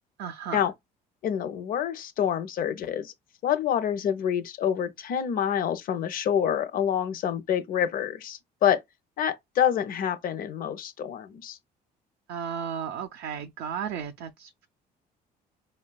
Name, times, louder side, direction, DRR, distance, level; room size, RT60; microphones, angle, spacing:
voice 1, 0.2-0.7 12.3-14.7, right 8 dB, 75° right, 0.4 m, -34 dB
voice 2, 1.2-3.1 3.4-8.8 9.2-11.6, left 9 dB, 60° left, 0.6 m, -27 dB
4.0 x 2.2 x 2.2 m
cardioid pair, 110°, 17 cm